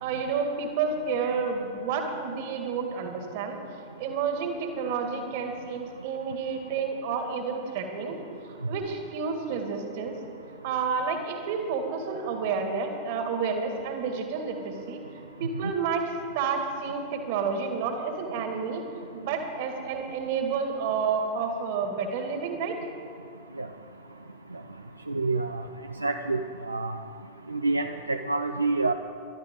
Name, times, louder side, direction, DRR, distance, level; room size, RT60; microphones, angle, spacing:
voice 1, 0.0-3.6 4.0-8.2 8.7-10.1 10.6-15.0 15.4-16.0 16.3-18.8 19.1-22.7, right 5 dB, 50° right, 4 dB, 2.1 m, -30 dB
voice 2, 25.1-25.6 26.0-26.4 26.7-26.9 27.5-28.9, right 3 dB, 85° right, 6 dB, 0.5 m, -27 dB
21.0 x 12.0 x 3.8 m, 2.3 s
figure-of-eight pair, 90°, 0 cm